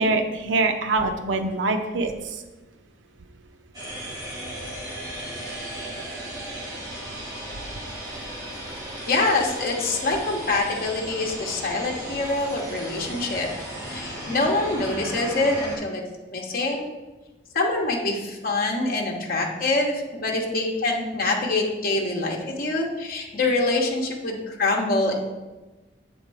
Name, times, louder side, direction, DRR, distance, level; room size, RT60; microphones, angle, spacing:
voice 1, 0.0-2.4, right 3 dB, 90° right, 6 dB, 0.6 m, -24 dB
sound 1, 3.7-15.8, right 1 dB, 20° right, 1.5 m, -35 dB
voice 2, 9.0-13.5 13.8-16.0 16.3-16.9 17.5-25.2, left 2 dB, 50° left, 0 dB, 0.9 m, -25 dB
7.3 x 3.5 x 4.7 m, 1.1 s
head